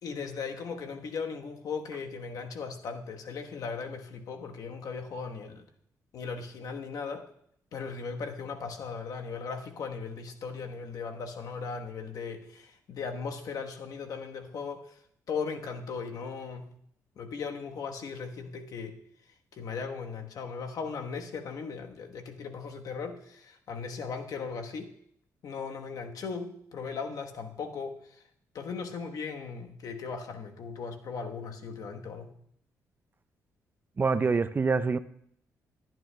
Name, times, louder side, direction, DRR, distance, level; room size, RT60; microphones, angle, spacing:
voice 1, 0.0-5.6 6.1-7.3 7.7-15.0 15.3-16.7 17.2-19.0 19.5-24.9 25.4-28.0 28.5-32.3, left 5 dB, 65° left, 4 dB, 1.2 m, -37 dB
voice 2, 34.0-35.0, right 4 dB, 30° right, 14 dB, 0.4 m, -25 dB
21.0 x 9.3 x 2.3 m, 0.68 s
cardioid pair, 80°, 7 cm